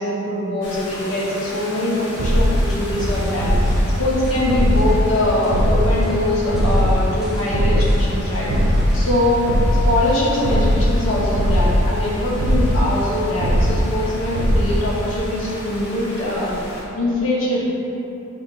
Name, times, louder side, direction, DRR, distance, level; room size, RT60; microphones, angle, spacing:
voice 1, 0.0-8.5 8.9-9.4 9.8-16.5 17.0-17.6, left 1 dB, 85° left, -7 dB, 1.0 m, -22 dB
Rain, 0.6-16.8, left 1 dB, 55° left, 1.3 m, -35 dB
sound 1, 2.2-15.3, equal, 70° right, 0.4 m, -20 dB
sound 2, 2.7-4.4 4.8-5.7 6.0-6.2 6.5-9.1, equal, ahead, 0.3 m, -37 dB
4.8 x 3.4 x 2.5 m, 3.0 s
head